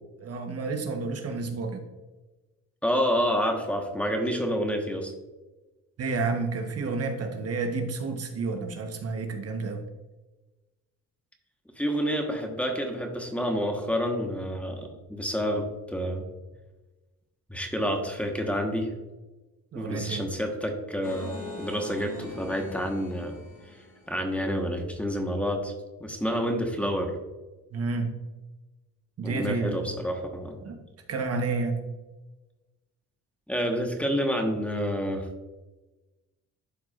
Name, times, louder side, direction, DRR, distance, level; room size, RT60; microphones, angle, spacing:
voice 1, 0.2-1.8 6.0-9.8 19.7-20.2 27.7-28.1 29.2-29.9 30.6-30.8 31.1-31.8, right 3 dB, 55° right, 5 dB, 1.1 m, -30 dB
voice 2, 2.8-5.1 11.8-16.2 17.5-18.9 19.7-23.4 24.1-25.7 26.0-27.1 29.2-30.6 33.5-35.3, equal, 5° left, 2 dB, 1.2 m, -28 dB
sound 1, 21.0-24.3, left 2 dB, 75° left, 2.1 m, -42 dB
11.5 x 4.7 x 2.5 m, 1.1 s
cardioid pair, 90°, 30 cm